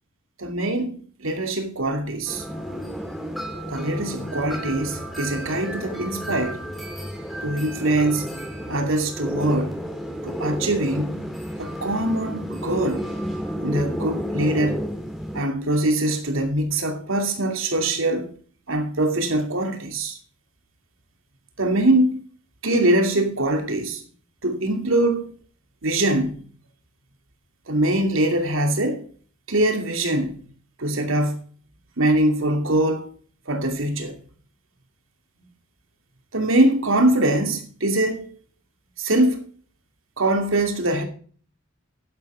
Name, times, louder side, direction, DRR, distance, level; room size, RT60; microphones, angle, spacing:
voice 1, 0.4-2.4 3.7-6.6 7.4-8.3 8.7-9.8 10.2-11.2 11.6-13.1 13.6-14.8 15.3-18.3 18.7-20.2 21.6-22.2 22.6-24.0 24.4-25.3 25.8-26.4 27.7-29.0 29.5-30.4 30.8-31.4 32.0-33.1 33.5-34.2 36.3-38.3 39.0-39.4 40.2-41.1, right 1 dB, 75° right, 2.6 m, -23 dB
sound 1, 2.3-15.4, equal, ahead, 4.1 m, -32 dB
12.0 x 10.5 x 3.5 m
head